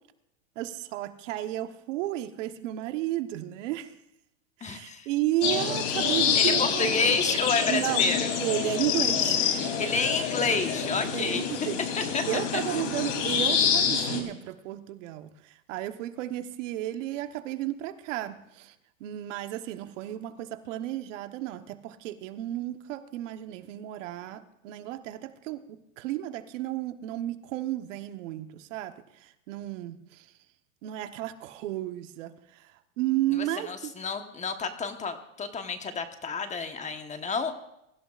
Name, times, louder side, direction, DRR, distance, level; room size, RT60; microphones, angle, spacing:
voice 1, 0.6-3.9 4.6-7.0 7.7-8.0 8.4-9.6 11.1-11.8 12.3-18.7 19.0-28.9 29.2-30.3 30.8-32.7 33.0-33.9, right 14 dB, 70° right, 9 dB, 1.2 m, -33 dB
voice 2, 4.6-5.1 6.3-8.3 9.8-11.5 12.0-12.8 33.3-37.5, left 4 dB, 20° left, 7 dB, 1.2 m, -30 dB
sound 1, 5.4-14.2, left 6 dB, 60° left, 3.3 m, -27 dB
23.0 x 15.0 x 2.5 m, 0.82 s
supercardioid pair, 120°, 39 cm